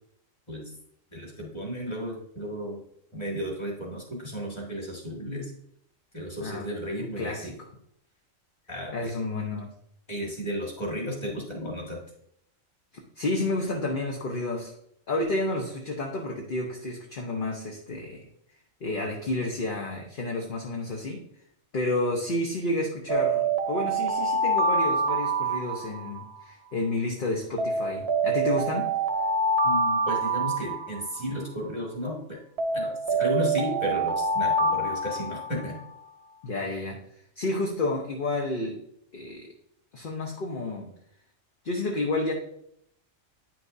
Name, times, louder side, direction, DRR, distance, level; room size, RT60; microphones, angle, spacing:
voice 1, 1.1-2.8 3.1-5.5 6.1-7.5 8.7-9.1 10.1-12.0 29.6-32.4 32.7-35.8, equal, 20° left, -2 dB, 1.8 m, -33 dB
voice 2, 7.0-7.5 8.9-9.7 13.2-14.7 15.1-18.3 18.8-21.2 21.7-28.9 36.4-37.0 37.4-38.8 39.1-39.5 39.9-40.9 41.6-42.3, left 2 dB, 45° left, 1 dB, 0.9 m, -30 dB
Alarm, 23.1-26.4 27.6-31.4 32.6-35.8, right 2 dB, 55° right, 1.0 m, -26 dB
9.3 x 6.0 x 2.6 m, 0.72 s
omnidirectional pair, 1.4 m